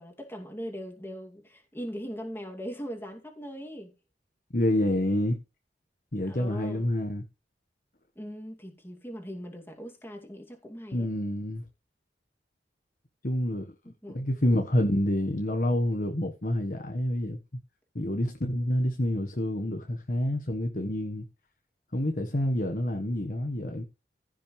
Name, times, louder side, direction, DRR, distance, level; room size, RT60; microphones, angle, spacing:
voice 1, 0.0-3.9 6.2-6.9 8.2-11.1 14.0-14.3, equal, 15° left, 2.4 m, -40 dB
voice 2, 4.5-5.4 6.1-7.2 10.9-11.6 13.2-13.7 14.1-17.4 17.9-21.2 21.9-23.8, left 1 dB, 50° left, 1.3 m, -28 dB
15.0 x 6.3 x 3.2 m
head